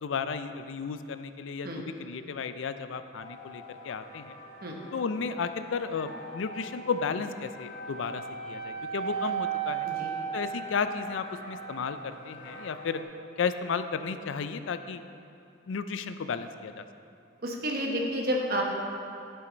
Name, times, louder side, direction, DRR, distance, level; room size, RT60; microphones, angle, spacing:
voice 1, 0.0-4.4 4.9-9.9 10.3-13.0 13.4-15.0 15.7-16.9, left 5 dB, 80° left, 10 dB, 0.4 m, -33 dB
sound 1, 3.1-13.0, right 6 dB, 40° left, 2.2 m, -38 dB
voice 2, 17.4-18.6, equal, 50° right, -1 dB, 1.1 m, -30 dB
11.5 x 5.7 x 4.0 m, 2.5 s
head